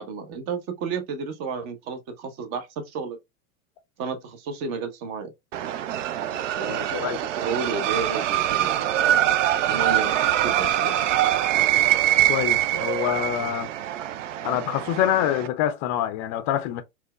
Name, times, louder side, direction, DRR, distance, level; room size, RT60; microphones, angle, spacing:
voice 1, 0.0-3.2 4.0-5.3 6.5-7.1 7.4-8.7 9.7-10.1 10.4-11.0, right 5 dB, 40° right, 0.8 m, -32 dB
sound 1, 5.5-15.5, right 12 dB, 65° right, 0.5 m, -24 dB
voice 2, 6.7-7.2 12.3-13.7 14.4-16.8, left 11 dB, 35° left, 0.5 m, -26 dB
4.2 x 2.3 x 2.2 m
hypercardioid pair, 100°, 42 cm